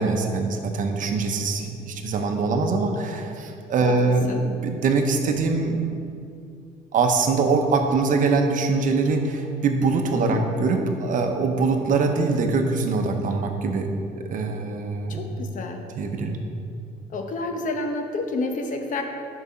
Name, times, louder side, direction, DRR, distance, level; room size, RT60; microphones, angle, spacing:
voice 1, 0.0-5.8 6.9-13.9 14.3-15.3 15.9-16.4, right 4 dB, 50° right, 4 dB, 0.8 m, -23 dB
voice 2, 10.1-10.4 15.1-15.8 17.1-19.0, left 3 dB, 50° left, 4 dB, 0.8 m, -29 dB
6.0 x 4.9 x 5.6 m, 2.5 s
cardioid pair, 110°, 17 cm